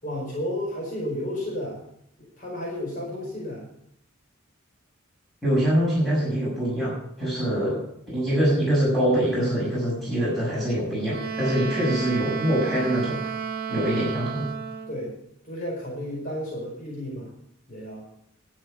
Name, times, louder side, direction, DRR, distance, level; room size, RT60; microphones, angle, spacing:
voice 1, 0.0-1.8 2.2-3.6 7.5-7.7 14.9-15.2 15.4-17.3 17.7-18.0, left 1 dB, 40° left, -3 dB, 5.2 m, -32 dB
voice 2, 5.4-7.8 8.1-13.2 13.7-14.5, right 1 dB, ahead, -7 dB, 6.5 m, -24 dB
Wind instrument woodwind instrument, 11.1-15.0, right 6 dB, 50° right, 1.4 m, -32 dB
12.5 x 7.7 x 8.4 m, 0.73 s
head